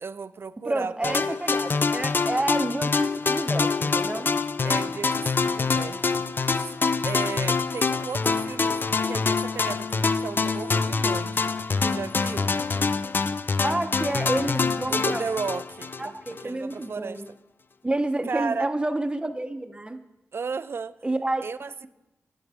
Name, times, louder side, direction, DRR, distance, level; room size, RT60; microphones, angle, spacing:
voice 1, 0.0-2.0 4.6-6.7 7.0-12.5 14.9-17.2 18.3-18.7 20.3-21.0 21.4-21.9, right 5 dB, 55° right, 16 dB, 0.3 m, -35 dB
voice 2, 0.6-4.3 13.6-15.2 16.0-17.3 17.8-20.0 21.0-21.4, right 2 dB, 20° right, 8 dB, 0.7 m, -29 dB
sound 1, 1.0-16.4, left 4 dB, 45° left, 0.3 m, -25 dB
9.4 x 9.3 x 3.5 m, 0.96 s
cardioid pair, 60°, 5 cm